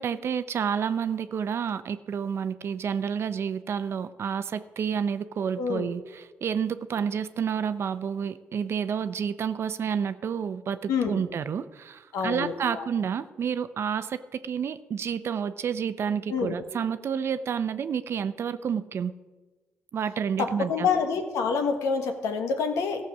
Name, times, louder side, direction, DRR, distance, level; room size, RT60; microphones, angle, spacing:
voice 1, 0.0-19.1 19.9-20.9, right 7 dB, 55° right, 13 dB, 0.6 m, -30 dB
voice 2, 5.6-5.9 10.9-11.2 12.1-12.9 16.3-16.6 20.4-23.0, left 5 dB, 80° left, 5 dB, 1.3 m, -27 dB
14.5 x 6.7 x 6.1 m, 1.3 s
cardioid pair, 70°, 5 cm